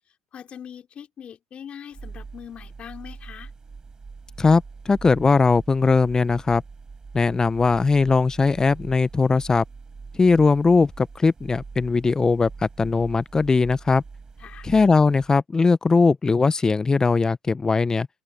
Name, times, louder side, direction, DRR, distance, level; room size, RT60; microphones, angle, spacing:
voice 1, 0.3-3.5 14.4-14.7, left 8 dB, 40° left, 4.1 m, -41 dB
sound 1, 1.9-15.3, right 4 dB, 25° right, 8.0 m, -43 dB
voice 2, 4.4-6.6 7.1-9.6 10.1-14.0 14.6-18.1, left 4 dB, 20° left, 0.9 m, -19 dB
hypercardioid pair, 75°, 3 cm